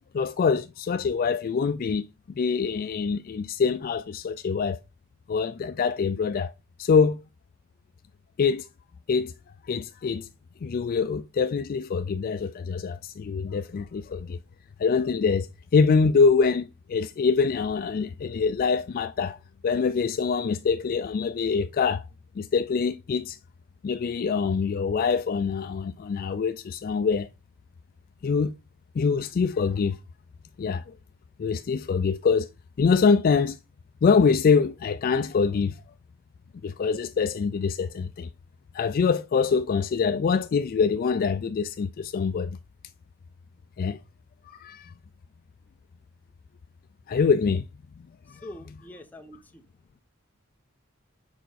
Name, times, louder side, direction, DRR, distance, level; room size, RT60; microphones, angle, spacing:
voice 1, 0.1-2.1 2.4-4.8 5.3-6.5 6.8-7.2 8.4-8.7 9.1-9.3 9.6-10.3 10.6-14.4 14.8-19.4 19.6-22.1 22.4-23.4 23.8-27.3 28.2-28.5 29.0-30.0 30.6-30.9 31.4-32.5 32.8-33.6 34.0-35.8 36.6-38.3 38.7-42.6 43.8-44.0 44.4-44.9 47.1-47.7 48.3-48.5, left 5 dB, 45° left, 0.3 m, -24 dB
voice 2, 48.3-49.6, left 1 dB, 10° left, 1.0 m, -44 dB
6.8 x 5.1 x 4.1 m
head